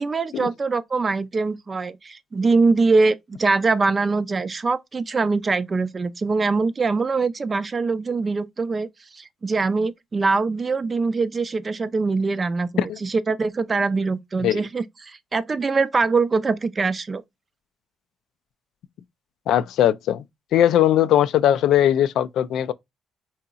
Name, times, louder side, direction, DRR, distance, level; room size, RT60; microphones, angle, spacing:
voice 1, 0.0-17.2, right 4 dB, 35° right, 0.4 m, -23 dB
voice 2, 19.5-20.2 20.5-22.7, left 11 dB, 80° left, 0.3 m, -19 dB
3.8 x 2.8 x 2.3 m
cardioid pair, 90°, 0 cm